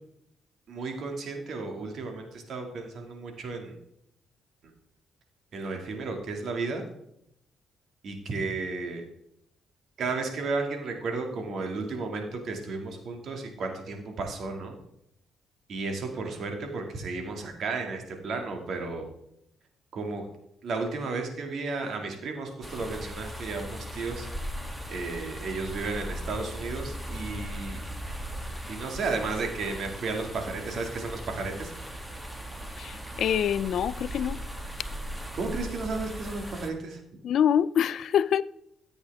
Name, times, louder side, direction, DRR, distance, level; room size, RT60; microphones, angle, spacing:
voice 1, 0.7-3.8 5.5-6.8 8.0-9.0 10.0-14.8 15.7-19.0 19.9-20.3 20.6-24.3 24.9-27.8 28.7-31.7 35.3-37.0, right 3 dB, 65° right, 2.2 m, -33 dB
sound 1, 22.6-36.7, equal, 10° right, 1.6 m, -38 dB
voice 2, 32.8-34.4 37.2-38.4, left 9 dB, 65° left, 0.3 m, -25 dB
14.0 x 8.1 x 3.5 m
cardioid pair, 90°, 0 cm